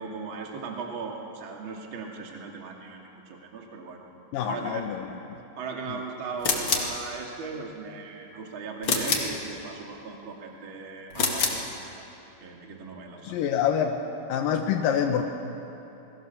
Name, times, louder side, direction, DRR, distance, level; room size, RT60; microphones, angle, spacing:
voice 1, 0.0-4.1 4.4-4.9 5.6-12.0 12.4-13.5, right 4 dB, 35° right, 0 dB, 2.4 m, -38 dB
voice 2, 4.3-5.4 5.9-6.0 13.2-14.0 14.3-15.2, left 8 dB, 80° left, 4 dB, 2.0 m, -26 dB
sound 1, 6.4-7.0 8.8-9.4 11.1-11.7, left 3 dB, 35° left, 2.1 m, -26 dB
28.5 x 21.5 x 7.1 m, 2.9 s
omnidirectional pair, 5.4 m